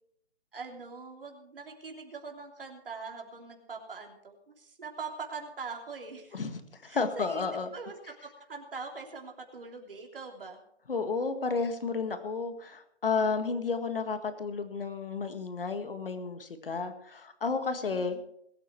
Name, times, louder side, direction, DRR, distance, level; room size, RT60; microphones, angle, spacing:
voice 1, 0.5-6.4 6.9-7.4 7.7-10.6 17.9-18.2, right 4 dB, 55° right, 2 dB, 3.2 m, -42 dB
voice 2, 6.3-7.7 10.9-18.2, left 4 dB, 55° left, 8 dB, 1.9 m, -32 dB
21.0 x 9.1 x 4.6 m, 0.72 s
hypercardioid pair, 170°, 33 cm